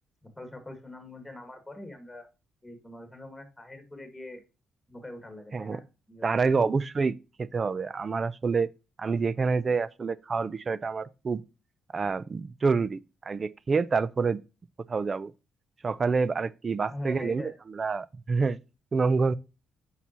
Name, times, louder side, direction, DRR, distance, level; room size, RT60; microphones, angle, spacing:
voice 1, 0.2-2.3 2.6-4.4 4.9-6.8 16.9-17.5, left 1 dB, 10° left, 2.2 m, -43 dB
voice 2, 6.2-8.7 9.0-11.4 11.9-14.4 14.9-15.3 15.8-18.6 18.9-19.3, right 4 dB, 35° right, 0.5 m, -27 dB
8.2 x 5.6 x 3.0 m
cardioid pair, 90°, 0 cm